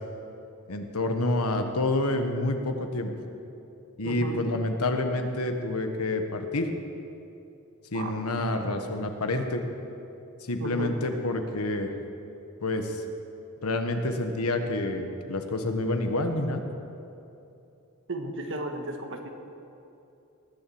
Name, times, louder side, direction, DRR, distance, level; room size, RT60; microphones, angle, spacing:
voice 1, 0.7-3.1 4.0-6.7 7.9-9.6 10.5-11.9 12.6-13.0 13.6-16.6, left 2 dB, 75° left, 6 dB, 1.3 m, -28 dB
voice 2, 4.0-4.5 7.9-8.1 10.6-10.9 18.1-19.3, right 2 dB, 60° right, 4 dB, 1.5 m, -34 dB
19.5 x 7.3 x 7.7 m, 2.8 s
head